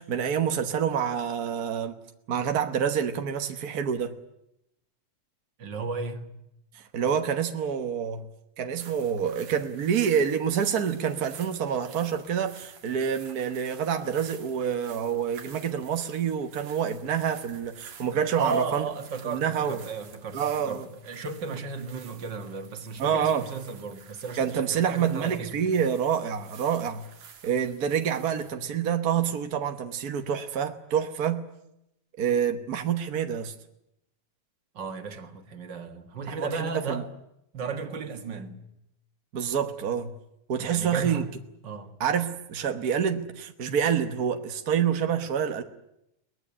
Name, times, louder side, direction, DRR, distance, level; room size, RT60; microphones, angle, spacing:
voice 1, 0.0-2.0 2.3-4.2 6.7-8.3 8.6-18.9 19.3-19.8 20.3-20.9 23.0-23.4 24.4-27.1 27.4-31.4 32.2-33.5 36.3-37.0 39.3-40.2 40.5-41.2 42.0-45.6, right 8 dB, 60° right, 0.9 m, -27 dB
voice 2, 5.6-6.3 18.4-25.5 34.7-37.1 37.5-38.6 40.6-41.3 41.6-42.0, right 4 dB, 40° right, 2.0 m, -34 dB
Footsteps on sand and gravel, 8.8-28.5, right 7 dB, 85° right, 3.6 m, -51 dB
23.0 x 19.5 x 9.8 m
omnidirectional pair, 3.4 m